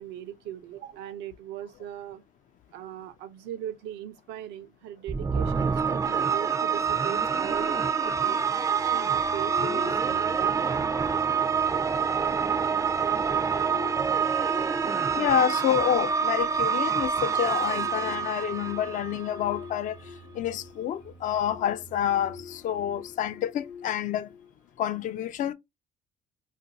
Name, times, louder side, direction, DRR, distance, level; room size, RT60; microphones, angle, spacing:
voice 1, 0.0-2.2 2.7-7.9 8.2-8.4 8.8-10.7 14.9-15.3, right 11 dB, 85° right, 0.6 m, -39 dB
sound 1, 5.1-19.5, right 6 dB, 20° right, 0.3 m, -26 dB
sound 2, 6.0-24.9, left 5 dB, 75° left, 0.7 m, -45 dB
voice 2, 15.0-24.3 24.8-25.5, left 10 dB, 50° left, 0.4 m, -28 dB
2.5 x 2.2 x 4.0 m
cardioid pair, 110°, 17 cm